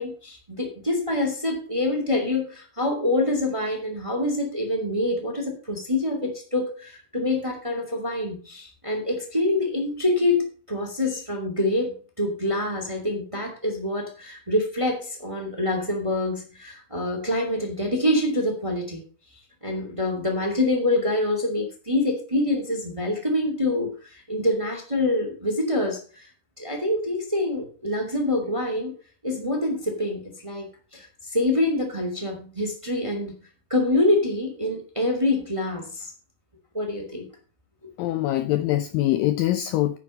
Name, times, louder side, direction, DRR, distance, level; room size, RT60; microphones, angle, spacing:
voice 1, 0.0-19.0 19.6-26.3 26.6-28.9 29.2-33.3 33.7-36.1 36.7-37.3, left 1 dB, 10° right, 2 dB, 1.7 m, -26 dB
voice 2, 38.0-40.0, left 14 dB, 80° left, 11 dB, 2.1 m, -23 dB
9.9 x 6.8 x 6.4 m, 0.39 s
omnidirectional pair, 4.6 m